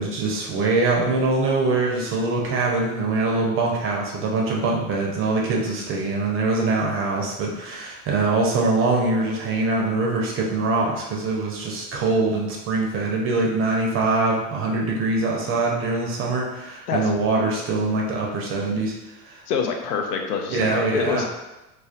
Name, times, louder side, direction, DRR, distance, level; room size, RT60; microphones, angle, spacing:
voice 1, 0.0-18.9 19.2-19.4 20.5-21.3, right 3 dB, 30° right, -1 dB, 0.5 m, -23 dB
voice 2, 19.5-21.3, left 5 dB, 85° left, 4 dB, 0.5 m, -26 dB
2.3 x 2.2 x 2.4 m, 1.0 s
hypercardioid pair, 85°, 45 cm